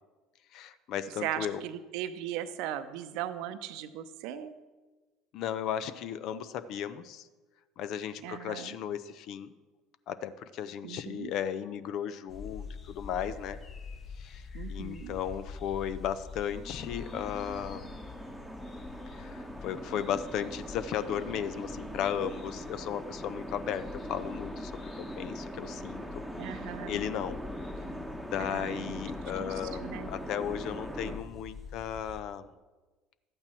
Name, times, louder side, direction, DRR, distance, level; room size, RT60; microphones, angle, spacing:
voice 1, 0.5-1.6 5.3-7.2 7.8-9.5 10.1-13.6 14.2-14.4 14.7-18.0 19.1-26.2 26.5-27.4 28.3-32.5, left 9 dB, 55° left, 13 dB, 0.6 m, -35 dB
voice 2, 1.2-4.5 8.2-8.8 10.8-11.3 14.5-15.2 26.4-27.0 28.4-29.0 29.4-30.1, right 11 dB, 65° right, 12 dB, 0.7 m, -38 dB
sound 1, 12.3-32.2, left 5 dB, 35° left, 1.2 m, -46 dB
sound 2, 16.5-31.2, equal, ahead, 1.2 m, -41 dB
12.5 x 8.7 x 4.5 m, 1.2 s
hypercardioid pair, 65°, 0 cm